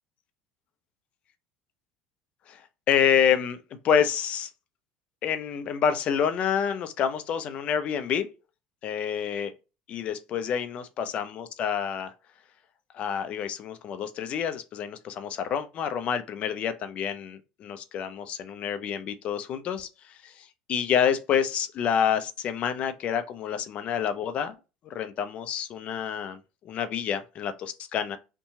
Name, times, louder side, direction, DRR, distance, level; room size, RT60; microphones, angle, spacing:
voice 1, 2.9-3.6 3.8-4.5 5.2-8.3 8.8-9.5 9.9-12.1 12.9-24.5 24.8-26.4 26.6-28.2, left 8 dB, 50° left, 0.5 m, -28 dB
2.8 x 2.2 x 2.7 m
hypercardioid pair, 75°, 3 cm